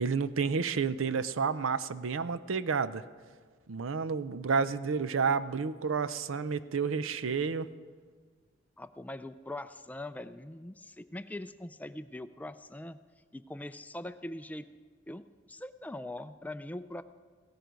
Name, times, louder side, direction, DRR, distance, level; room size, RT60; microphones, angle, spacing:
voice 1, 0.0-3.0 3.7-7.7, right 5 dB, 85° right, 15 dB, 0.5 m, -30 dB
voice 2, 8.8-13.0 13.3-14.6 15.1-17.0, left 1 dB, 10° left, 11 dB, 0.3 m, -42 dB
16.5 x 14.0 x 5.1 m, 1.5 s
head